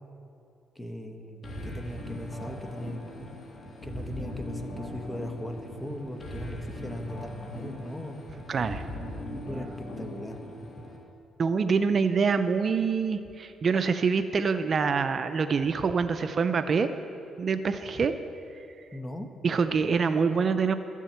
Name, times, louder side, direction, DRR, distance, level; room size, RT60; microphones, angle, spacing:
voice 1, 0.7-3.3 3.8-8.2 9.3-9.7 10.0-10.9 18.9-19.3, equal, 10° left, 5 dB, 1.2 m, -39 dB
sound 1, 1.4-11.0, left 1 dB, 45° left, 2.6 m, -39 dB
sound 2, 2.1-8.8, right 1 dB, 10° right, 1.9 m, -50 dB
voice 2, 8.5-8.8 11.4-16.9 17.4-18.1 19.4-20.7, right 5 dB, 45° right, 9 dB, 0.5 m, -25 dB
12.5 x 7.3 x 8.0 m, 2.8 s
cardioid pair, 90°, 0 cm